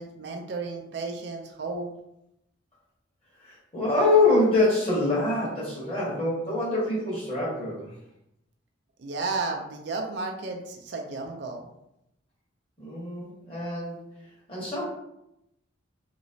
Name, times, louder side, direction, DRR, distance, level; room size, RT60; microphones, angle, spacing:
voice 1, 0.0-1.9 9.0-11.6, right 3 dB, 60° right, 1 dB, 0.4 m, -33 dB
voice 2, 3.4-7.9 12.8-14.0 14.5-14.9, left 2 dB, 30° left, -7 dB, 1.4 m, -25 dB
3.0 x 2.9 x 2.7 m, 0.84 s
head